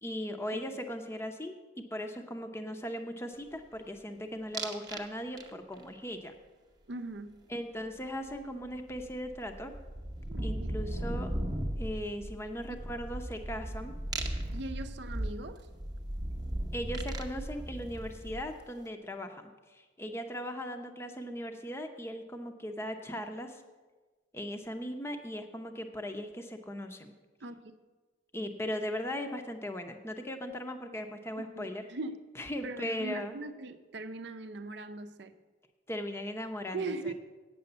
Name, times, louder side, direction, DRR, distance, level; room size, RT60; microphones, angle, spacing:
voice 1, 0.0-6.3 7.5-9.7 10.4-11.3 11.8-13.9 16.7-23.6 24.3-27.1 28.3-31.9 32.3-33.4 35.9-37.1, equal, 15° left, 0.7 m, -38 dB
sound 1, 4.5-5.1 5.4-5.8 8.3-8.4 8.6-18.7, right 1 dB, 20° right, 0.8 m, -37 dB
voice 2, 6.9-7.4 10.3-10.7 14.5-15.7 27.4-27.6 31.4-32.2 32.6-35.3 36.7-37.1, right 2 dB, 60° right, 0.6 m, -40 dB
8.9 x 6.9 x 7.9 m
head